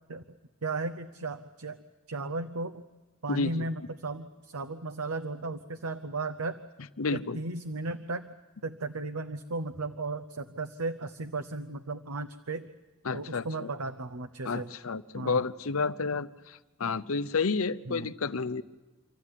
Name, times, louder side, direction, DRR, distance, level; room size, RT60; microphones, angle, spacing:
voice 1, 0.6-1.8 2.1-2.8 3.2-6.6 7.1-8.3 8.6-12.7 13.1-14.7 15.1-15.4 17.9-18.1, right 3 dB, 90° right, 9 dB, 0.8 m, -35 dB
voice 2, 3.3-3.6 7.0-7.4 13.0-13.7 14.4-18.6, left 4 dB, 75° left, 13 dB, 0.8 m, -30 dB
26.0 x 14.0 x 9.9 m, 1.2 s
head